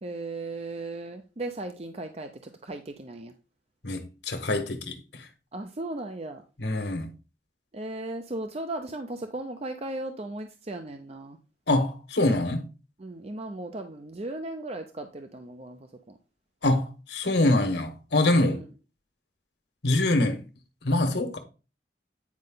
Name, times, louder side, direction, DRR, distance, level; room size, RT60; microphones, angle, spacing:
voice 1, 0.0-3.3 5.5-6.4 7.7-11.4 13.0-15.8 16.1-16.2 18.4-18.7, right 2 dB, 35° right, 0.6 m, -36 dB
voice 2, 3.8-5.0 6.6-7.1 11.7-12.6 16.6-16.8 17.1-18.6 19.8-20.4 20.8-21.4, left 2 dB, 65° left, 1.6 m, -24 dB
9.6 x 5.3 x 3.9 m
head